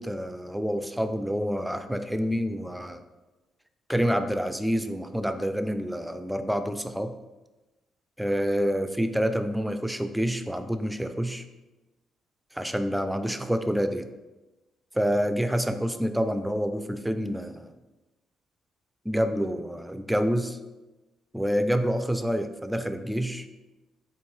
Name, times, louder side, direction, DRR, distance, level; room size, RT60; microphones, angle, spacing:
voice 1, 0.0-3.0 3.9-7.2 8.2-11.4 12.5-14.1 14.9-17.7 19.1-20.6 21.3-23.5, equal, 5° right, 8 dB, 0.3 m, -27 dB
4.4 x 3.1 x 3.1 m, 1.1 s
cardioid pair, 90°, 0 cm